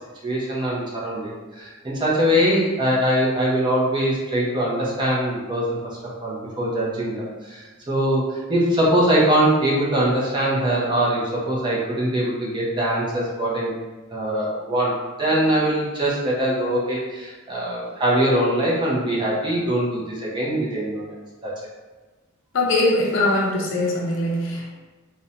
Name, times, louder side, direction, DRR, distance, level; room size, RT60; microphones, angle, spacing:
voice 1, 0.2-5.8 6.2-13.7 14.1-14.9 15.2-21.1 21.4-21.5, right 1 dB, 20° right, -6 dB, 0.5 m, -22 dB
voice 2, 22.5-24.7, left 2 dB, 60° left, -1 dB, 0.5 m, -21 dB
2.6 x 2.1 x 2.7 m, 1.2 s
head